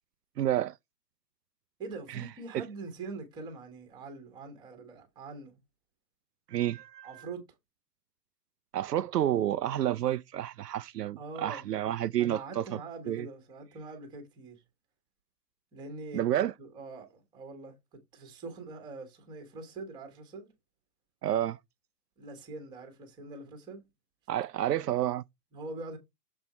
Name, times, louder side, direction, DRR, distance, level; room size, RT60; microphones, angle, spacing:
voice 1, 0.4-0.8 2.1-2.2 2.5-2.7 6.5-7.3 8.7-12.6 13.1-13.3 16.1-16.5 21.2-21.6 24.3-25.2, right 12 dB, 75° right, 0.5 m, -30 dB
voice 2, 1.8-5.6 7.0-7.5 11.2-11.6 12.2-14.6 15.7-16.3 16.6-20.5 22.2-23.8 25.5-26.0, right 3 dB, 10° right, 1.2 m, -43 dB
7.1 x 4.4 x 4.2 m
hypercardioid pair, 150°, 49 cm